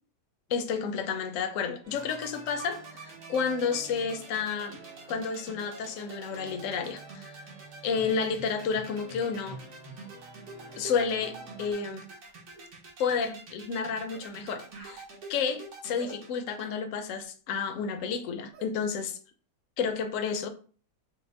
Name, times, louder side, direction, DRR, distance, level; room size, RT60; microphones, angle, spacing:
voice 1, 0.5-4.8 5.1-7.5 7.8-9.6 10.8-12.1 13.0-15.0 15.3-19.2 19.8-20.5, left 6 dB, 70° left, 0.8 m, -31 dB
sound 1, 1.8-11.7, right 3 dB, 50° right, 1.1 m, -50 dB
sound 2, 1.9-16.6, right 4 dB, 85° right, 1.8 m, -46 dB
sound 3, 12.5-12.7 13.1-13.3 14.1-14.4 14.7-15.0 16.0-16.2 16.6-16.8 18.5-18.7, right 3 dB, 65° right, 1.8 m, -48 dB
5.1 x 2.1 x 3.3 m
omnidirectional pair, 1.8 m